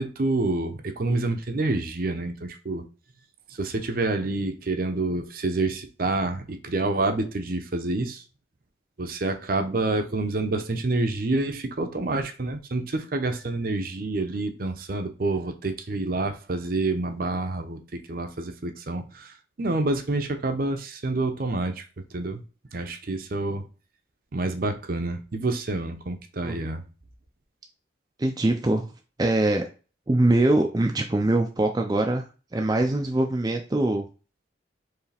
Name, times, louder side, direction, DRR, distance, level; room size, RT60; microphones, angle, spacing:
voice 1, 0.0-2.9 3.6-8.2 9.0-21.8 22.1-22.4 22.7-23.6 24.3-26.8, right 2 dB, 50° right, 0.7 m, -28 dB
voice 2, 28.2-28.9 29.2-29.7 30.1-32.2 32.5-34.0, right 2 dB, 20° right, 0.4 m, -23 dB
4.7 x 3.3 x 3.4 m
head